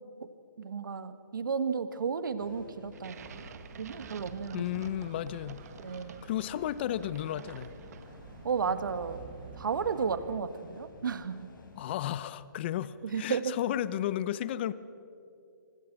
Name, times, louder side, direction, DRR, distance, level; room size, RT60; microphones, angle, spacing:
voice 1, 0.6-3.4 3.8-4.6 5.8-6.2 8.4-9.2 9.6-11.5 13.0-13.5, right 6 dB, 70° right, 11 dB, 1.8 m, -33 dB
sound 1, 2.4-12.2, left 3 dB, 70° left, 4.7 m, -53 dB
sound 2, 2.9-8.4, right 6 dB, 50° right, 1.8 m, -50 dB
sound 3, 3.1-10.4, right 8 dB, 30° right, 1.2 m, -51 dB
voice 2, 4.5-5.6 6.2-7.7 11.8-14.7, left 12 dB, 30° left, 17 dB, 0.7 m, -33 dB
26.5 x 25.0 x 6.2 m, 2.6 s
hypercardioid pair, 160°, 11 cm